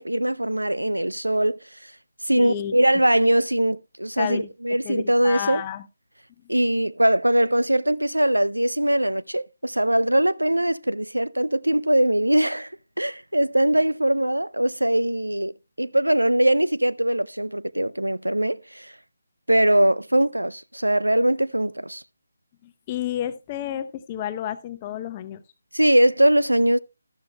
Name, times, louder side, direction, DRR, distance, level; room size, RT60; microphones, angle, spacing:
voice 1, 0.0-1.6 2.2-5.6 6.5-12.7 13.0-18.9 19.5-22.0 25.7-26.8, right 1 dB, 85° right, 0.5 m, -21 dB
voice 2, 2.4-2.7 4.2-4.5 4.8-5.8 22.6-25.4, left 10 dB, 25° left, 0.7 m, -31 dB
12.5 x 12.0 x 2.2 m
figure-of-eight pair, 150°, 0 cm